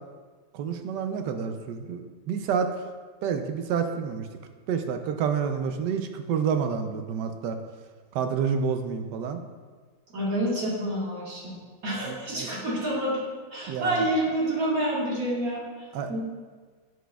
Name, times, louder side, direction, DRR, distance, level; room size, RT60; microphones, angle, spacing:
voice 1, 0.5-2.8 3.2-4.3 4.7-7.6 8.1-9.4 12.1-12.5 13.7-14.0 15.9-16.2, right 6 dB, 75° right, 7 dB, 1.1 m, -29 dB
voice 2, 10.1-11.5 11.8-13.2 13.5-16.2, right 1 dB, 55° right, -5 dB, 2.0 m, -28 dB
9.2 x 6.2 x 2.3 m, 1.5 s
omnidirectional pair, 2.0 m